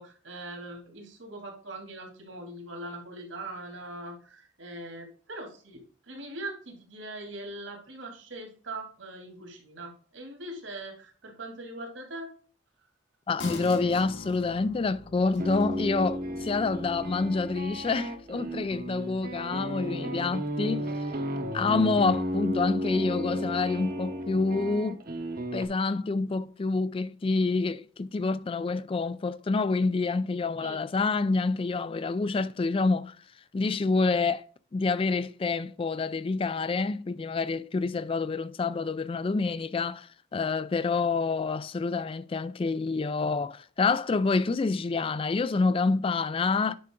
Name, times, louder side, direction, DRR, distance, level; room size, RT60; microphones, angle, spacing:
voice 1, 0.0-12.3 30.6-30.8, right 2 dB, 80° right, 2.7 m, -41 dB
voice 2, 13.3-20.9 21.5-25.0 25.5-33.2 33.5-34.5 34.7-46.8, left 4 dB, 30° left, 0.3 m, -27 dB
sound 1, 13.4-20.4 20.8-20.9, left 3 dB, 75° left, 1.8 m, -45 dB
sound 2, 15.2-25.6, equal, 50° right, 0.9 m, -33 dB
9.4 x 5.6 x 3.8 m
head